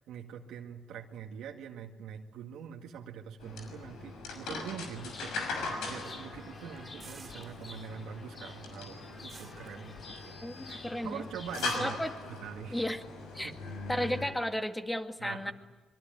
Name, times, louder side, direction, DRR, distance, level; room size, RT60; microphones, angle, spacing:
voice 1, 0.0-5.3 5.6-10.4 10.7-12.0 12.3-12.8 13.4-13.6 15.2-15.5, right 8 dB, 85° right, 0 dB, 2.0 m, -44 dB
sound 1, 3.4-14.3, left 3 dB, 85° left, 6.2 m, -40 dB
Chirp tweet, 5.0-12.2, left 2 dB, 30° left, 3.2 m, -52 dB
sound 2, 7.0-8.1 8.4-10.4 10.8-11.1 11.5-13.4, right 5 dB, 40° right, 3.1 m, -52 dB
voice 2, 10.4-11.3 11.7-12.1 12.7-13.0 13.3-13.5 13.9-15.5, equal, 10° left, 6 dB, 2.1 m, -33 dB
25.0 x 23.5 x 9.3 m, 1.2 s
cardioid pair, 90°, 0 cm